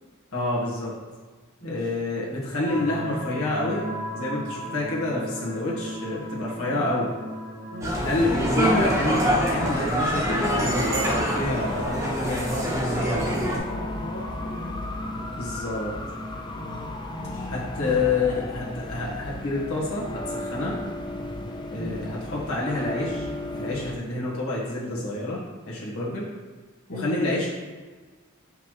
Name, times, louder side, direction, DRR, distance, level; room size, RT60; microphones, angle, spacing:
voice 1, 0.3-0.9 1.6-3.8 4.1-7.1 8.0-13.4 15.4-15.9 17.5-20.8 21.7-23.3 23.5-25.4 25.7-26.3 26.9-27.5, left 2 dB, 90° left, -6 dB, 1.7 m, -28 dB
voice 2, 1.6-1.9 6.6-6.9 7.7-8.0 13.2-14.7 16.5-18.0 21.8-22.0 26.9-27.2, equal, 40° left, -6 dB, 1.6 m, -38 dB
sound 1, 2.6-19.2, equal, 60° right, 1.5 m, -39 dB
sound 2, 7.8-13.6, equal, 15° right, 0.9 m, -25 dB
sound 3, 7.9-24.0, left 1 dB, 20° left, 0.4 m, -34 dB
5.8 x 5.7 x 3.2 m, 1.4 s
head